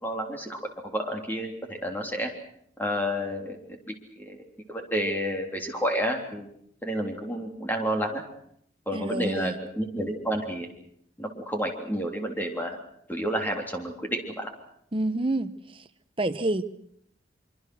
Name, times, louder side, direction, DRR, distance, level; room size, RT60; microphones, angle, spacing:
voice 1, 0.0-2.3 2.8-3.6 3.9-4.4 4.7-6.5 6.8-8.2 8.9-10.7 11.2-12.8 13.1-14.5, equal, 10° left, 2 dB, 3.5 m, -30 dB
voice 2, 8.9-9.5 14.9-15.5 16.2-16.6, right 2 dB, 30° right, 10 dB, 1.0 m, -27 dB
25.0 x 24.5 x 6.3 m, 0.69 s
head